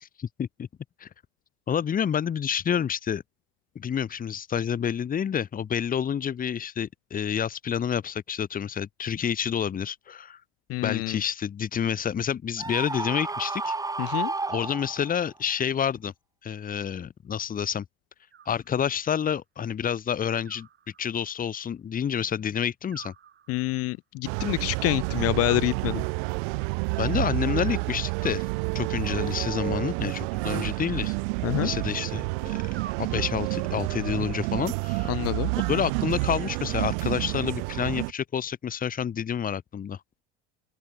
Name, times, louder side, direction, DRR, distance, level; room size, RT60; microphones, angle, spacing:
voice 1, 0.0-0.7 1.0-1.1 1.7-3.2 3.7-10.4 10.8-16.1 16.4-17.8 18.5-20.7 21.0-23.1 27.0-28.5 28.7-31.2 31.5-32.6 33.0-35.2 35.7-40.0, left 8 dB, 30° left, 1.0 m, -29 dB
voice 2, 10.7-11.2 14.0-14.3 23.5-26.0 31.4-31.7 35.1-35.5, left 19 dB, 55° left, 0.7 m, -27 dB
Screaming, 12.6-15.3, right 3 dB, 10° right, 1.1 m, -31 dB
Animal, 18.3-19.2 20.4-21.5 22.9-24.0 25.4-26.4 28.2-29.1 30.4-31.5 32.7-33.7 35.0-35.9, right 8 dB, 40° right, 5.0 m, -50 dB
sound 1, 24.2-38.1, right 35 dB, 70° right, 0.7 m, -29 dB
open air
hypercardioid pair, 80°, 29 cm